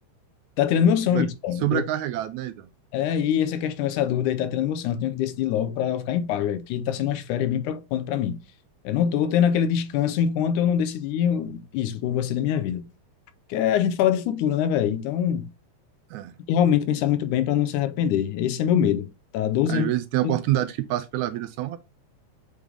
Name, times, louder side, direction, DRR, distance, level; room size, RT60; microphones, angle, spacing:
voice 1, 0.6-1.8 2.9-8.4 8.8-12.8 13.5-15.5 16.5-19.1 19.3-19.9 20.2-20.4, left 9 dB, 85° left, 2.2 m, -24 dB
voice 2, 1.6-2.7 16.1-16.3 19.7-21.8, right 14 dB, 80° right, 1.8 m, -26 dB
8.1 x 3.4 x 3.6 m
omnidirectional pair, 3.5 m